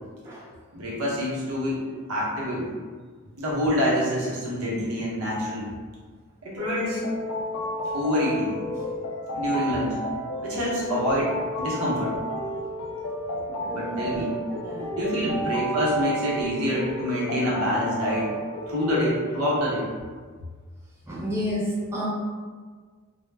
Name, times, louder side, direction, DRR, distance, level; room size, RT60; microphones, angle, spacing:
voice 1, 0.7-2.7 3.4-5.7 6.4-7.1 7.9-8.6 9.3-10.0 10.4-12.1 13.5-14.3 15.0-18.3 18.7-19.9, equal, 80° right, -5 dB, 0.8 m, -26 dB
sound 1, 6.6-19.1, equal, 80° left, 0.4 m, -31 dB
voice 2, 13.6-15.4 21.1-22.0, equal, 10° right, -7 dB, 0.4 m, -32 dB
2.1 x 2.0 x 3.2 m, 1.5 s
head